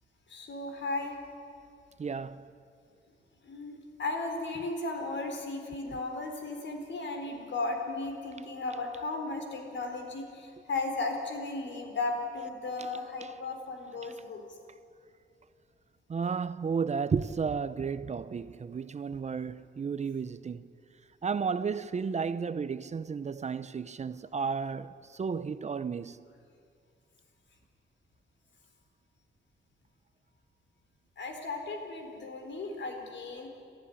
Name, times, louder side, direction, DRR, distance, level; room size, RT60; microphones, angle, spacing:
voice 1, 0.3-1.1 3.4-14.4 31.2-33.5, left 3 dB, 65° left, 4.1 m, -35 dB
voice 2, 2.0-2.4 12.8-12.9 16.1-20.7 21.2-26.2, right 5 dB, 35° right, 0.6 m, -33 dB
28.5 x 14.0 x 9.9 m
wide cardioid pair, 140°, 20 cm